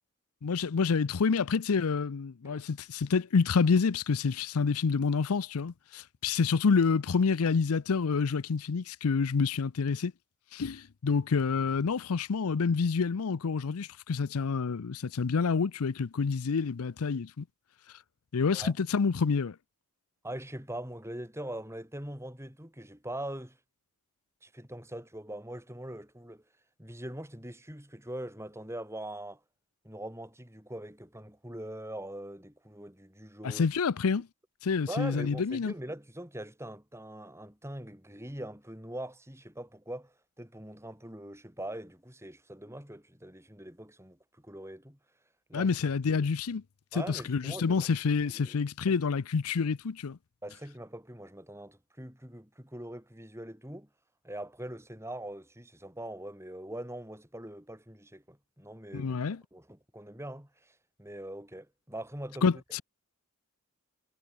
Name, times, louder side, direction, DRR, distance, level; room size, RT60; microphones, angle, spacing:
voice 1, 0.4-10.1 10.5-17.4 18.3-19.6 33.4-34.3 34.6-35.7 45.5-46.6 46.9-50.2 58.9-59.4 62.4-62.8, left 5 dB, 75° left, 0.5 m, -28 dB
voice 2, 20.2-23.6 24.4-26.4 26.8-29.4 29.8-33.6 34.9-45.0 45.5-45.7 46.1-46.3 46.9-47.9 48.3-48.6 48.9-49.0 50.4-53.9 54.2-59.2 59.5-62.5, right 1 dB, 10° right, 8.0 m, -42 dB
head